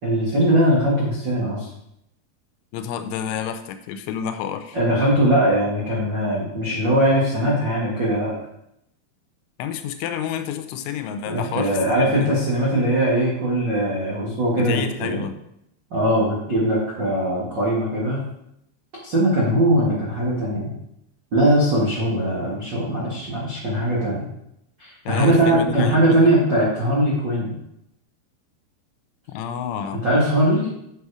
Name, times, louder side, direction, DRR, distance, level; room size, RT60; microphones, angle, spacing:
voice 1, 0.0-1.7 4.7-8.3 11.2-15.2 15.9-18.2 19.0-20.7 21.3-24.3 24.8-27.6 30.0-30.7, right 1 dB, 60° right, -6 dB, 1.1 m, -20 dB
voice 2, 2.7-4.8 9.6-12.3 14.5-15.4 25.1-26.3 29.3-30.0, left 8 dB, 85° left, 9 dB, 3.1 m, -29 dB
8.4 x 6.1 x 4.9 m, 0.78 s
omnidirectional pair, 5.5 m